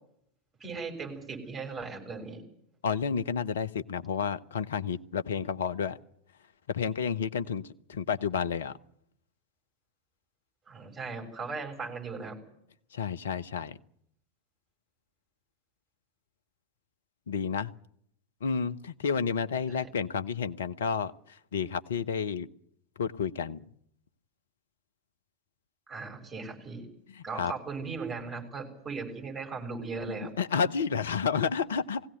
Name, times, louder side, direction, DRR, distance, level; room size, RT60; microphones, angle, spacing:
voice 1, 0.6-2.4 10.7-12.4 19.7-19.8 25.9-26.8 27.2-30.4, right 4 dB, 15° right, 7.2 m, -38 dB
voice 2, 2.8-6.0 6.7-8.8 12.9-13.8 17.3-17.7 18.4-22.5 23.0-23.6 27.1-27.5 30.1-32.0, left 6 dB, 65° left, 0.9 m, -31 dB
20.0 x 17.0 x 9.4 m
figure-of-eight pair, 90°, 0 cm